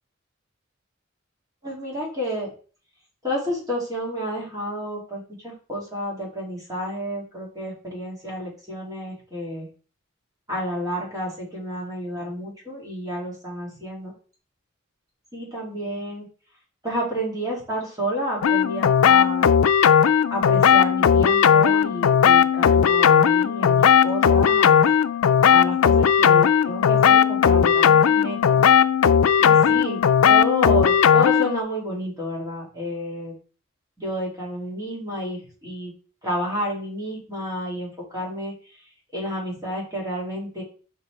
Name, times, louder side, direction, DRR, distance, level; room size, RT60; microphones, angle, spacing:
voice 1, 1.6-2.5 3.2-9.7 10.5-14.1 15.3-16.3 16.8-19.5 20.3-24.9 25.5-28.6 29.4-30.0 30.3-33.3 34.0-35.9 36.2-38.5 39.1-40.6, equal, 20° right, -4 dB, 2.9 m, -30 dB
sound 1, 18.4-31.6, left 7 dB, 85° left, 0.4 m, -17 dB
5.8 x 4.6 x 4.6 m, 0.40 s
head